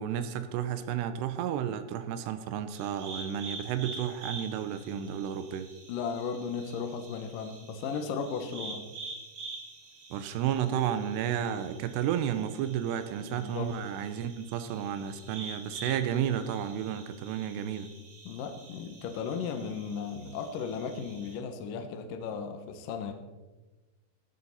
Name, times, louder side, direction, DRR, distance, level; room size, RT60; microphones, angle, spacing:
voice 1, 0.0-5.7 10.1-17.9, right 9 dB, 80° right, 10 dB, 2.9 m, -32 dB
sound 1, 2.7-21.4, right 3 dB, 50° right, 4.0 m, -47 dB
voice 2, 5.9-8.8 13.3-13.7 18.3-23.1, left 6 dB, 70° left, 7 dB, 2.2 m, -35 dB
16.5 x 12.0 x 4.2 m, 1.2 s
omnidirectional pair, 5.0 m